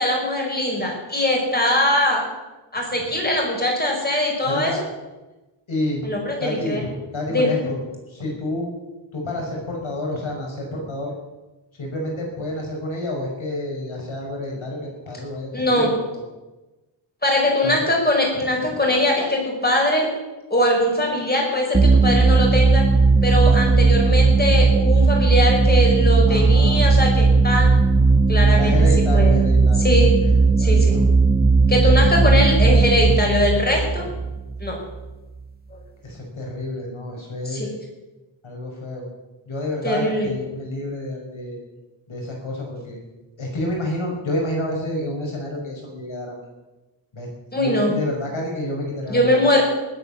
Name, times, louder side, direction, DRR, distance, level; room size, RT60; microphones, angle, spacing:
voice 1, 0.0-2.2 2.7-4.7 6.0-6.8 7.3-7.6 15.5-15.9 17.2-20.1 20.5-22.9 23.2-27.7 28.3-28.7 29.1-29.4 29.8-30.2 30.6-31.0 31.7-34.1 34.6-34.8 37.5-37.7 39.8-40.3 47.5-48.0 49.1-49.6, left 1 dB, 20° left, -1 dB, 5.2 m, -21 dB
voice 2, 4.4-4.8 5.7-6.1 6.4-7.8 8.1-8.8 9.1-11.1 11.7-16.2 17.6-17.9 18.4-18.7 26.3-26.9 27.3-27.6 28.5-29.9 30.2-31.0 33.9-34.2 36.0-37.7 38.4-39.0 39.5-41.6 42.1-43.0 43.4-46.5 47.1-47.3 47.6-49.4, left 1 dB, 80° left, 0 dB, 5.6 m, -29 dB
sound 1, 21.7-35.0, right 3 dB, 20° right, 1.3 m, -16 dB
20.0 x 8.6 x 7.2 m, 1.1 s
wide cardioid pair, 125°, 47 cm